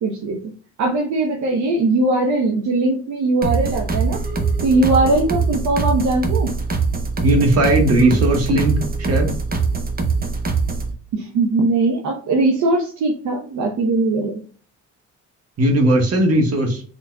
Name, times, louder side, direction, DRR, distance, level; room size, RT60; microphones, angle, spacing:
voice 1, 0.0-0.4 0.8-4.2 4.6-6.5 11.1-14.4, right 2 dB, 70° right, 0 dB, 0.9 m, -20 dB
sound 1, 3.4-10.9, right 4 dB, 30° right, 0.9 m, -22 dB
voice 2, 7.2-8.7 9.0-9.3 15.6-16.8, right 1 dB, 55° right, 2 dB, 1.5 m, -17 dB
4.0 x 4.0 x 2.3 m, 0.42 s
cardioid pair, 90°, 30 cm